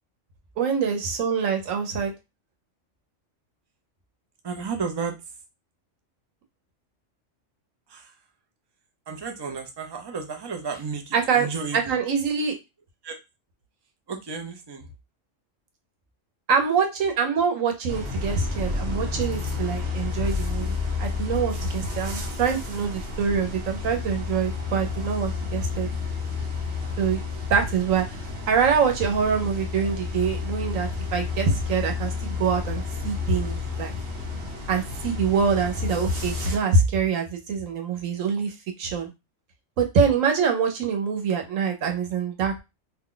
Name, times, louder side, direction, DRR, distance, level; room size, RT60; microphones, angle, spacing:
voice 1, 0.6-2.1 11.1-11.5 11.7-12.5 16.5-25.9 27.0-27.2 27.5-28.1 28.5-33.9 34.7-39.1 39.8-42.6, right 6 dB, 90° right, 4 dB, 1.2 m, -25 dB
voice 2, 4.4-5.2 7.9-8.1 9.1-12.0 13.0-13.2 14.1-14.9, right 5 dB, 40° right, 4 dB, 0.3 m, -33 dB
sound 1, 17.9-36.6, left 4 dB, 60° right, 1.1 m, -31 dB
2.7 x 2.1 x 3.8 m, 0.24 s
omnidirectional pair, 1.3 m